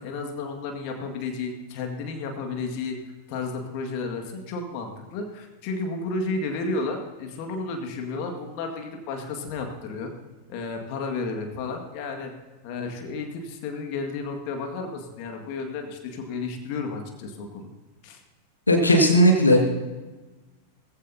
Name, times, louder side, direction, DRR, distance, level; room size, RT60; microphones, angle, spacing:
voice 1, 0.0-3.0 3.3-10.1 10.5-12.3 12.6-17.7 18.0-18.2, left 3 dB, 45° left, 3 dB, 2.0 m, -32 dB
voice 2, 18.7-19.6, equal, 80° left, 2 dB, 1.8 m, -16 dB
19.5 x 15.0 x 2.8 m, 1.2 s
figure-of-eight pair, 90°, 0 cm